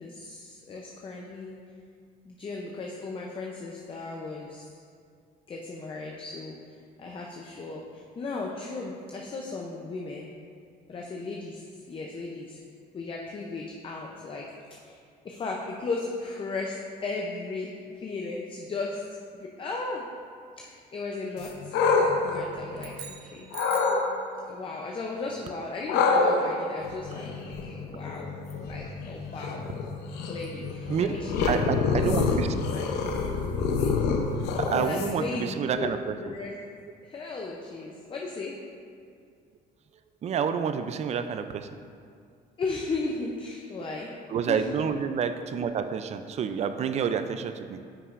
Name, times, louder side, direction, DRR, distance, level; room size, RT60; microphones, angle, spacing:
voice 1, 0.0-1.5 2.2-4.7 5.5-6.5 7.0-10.3 10.9-12.6 12.9-14.5 14.8-15.0 15.2-17.7 18.0-19.0 19.3-20.1 20.6-21.8 22.2-23.5 24.5-28.3 28.7-29.6 30.2-32.9 33.6-34.2 34.8-35.9 36.2-36.5 37.0-38.5 42.6-44.1 44.5-44.7, left 3 dB, 30° left, -1 dB, 0.6 m, -36 dB
sound 1, 21.4-23.1 23.5-24.0 25.9-35.4, left 4 dB, 85° left, 0.7 m, -27 dB
sound 2, 22.7-24.1, right 9 dB, 90° right, 0.7 m, -42 dB
voice 2, 31.5-32.5 34.6-36.1 40.2-41.7 44.3-47.8, right 7 dB, 40° right, 9 dB, 0.4 m, -28 dB
9.5 x 5.5 x 2.5 m, 2.3 s
cardioid pair, 110°, 17 cm